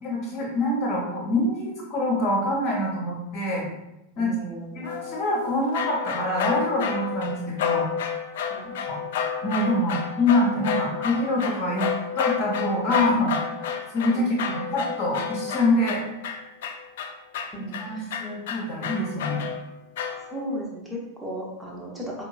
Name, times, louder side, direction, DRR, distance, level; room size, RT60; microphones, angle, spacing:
voice 1, 0.0-3.7 4.2-4.3 4.7-7.8 8.9-9.0 9.4-11.9 12.2-13.3 13.9-16.0 17.8-19.4, left 1 dB, 35° left, -4 dB, 0.9 m, -25 dB
voice 2, 4.2-4.9 7.3-7.5 8.5-8.7 14.1-14.5 17.5-18.2 20.2-22.2, equal, 5° right, -3 dB, 0.8 m, -36 dB
sound 1, 4.8-20.6, left 7 dB, 55° left, 0.3 m, -30 dB
4.6 x 2.2 x 2.4 m, 0.91 s
figure-of-eight pair, 90°, 0 cm